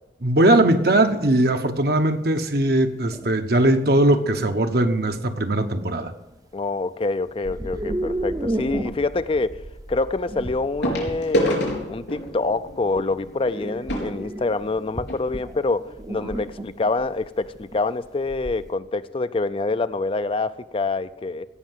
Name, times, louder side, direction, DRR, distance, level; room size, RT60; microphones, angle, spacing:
voice 1, 0.2-6.1, right 1 dB, 60° right, 7 dB, 1.1 m, -20 dB
sound 1, 0.6-0.7 1.3-1.4 2.1-2.2 3.1-3.8 5.1-5.2 5.6-6.0 7.4-18.7, right 1 dB, 20° right, 0.7 m, -33 dB
voice 2, 6.5-9.6 9.9-21.5, left 3 dB, 30° left, 13 dB, 0.4 m, -26 dB
sound 2, 7.3-7.5 9.2-9.3 10.8-15.2 16.0-16.1 16.3-16.5 17.0-17.1, equal, 85° left, 4.3 m, -28 dB
17.0 x 5.9 x 9.3 m, 1.0 s
head